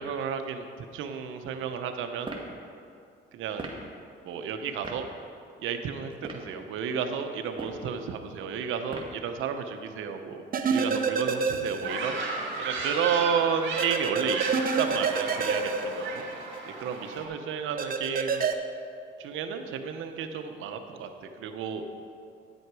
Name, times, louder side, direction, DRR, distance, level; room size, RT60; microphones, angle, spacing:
voice 1, 0.0-2.3 3.3-3.7 4.2-5.1 5.6-10.4 10.7-12.2 12.6-14.4 14.8-16.2 16.8-18.5 19.2-21.8, right 7 dB, 85° right, 7 dB, 0.8 m, -32 dB
sound 1, 2.2-2.5 3.6-3.8 4.8-5.0 6.1-6.5 7.5-7.9 8.9-9.2, right 2 dB, 25° right, 1.4 m, -38 dB
sound 2, 10.5-12.2 12.5-12.6 13.8-16.6 17.8-18.5, right 5 dB, 45° right, 0.7 m, -28 dB
sound 3, 11.8-17.3, right 3 dB, 65° right, 1.9 m, -34 dB
10.0 x 7.9 x 4.8 m, 2.4 s
cardioid pair, 90°, 20 cm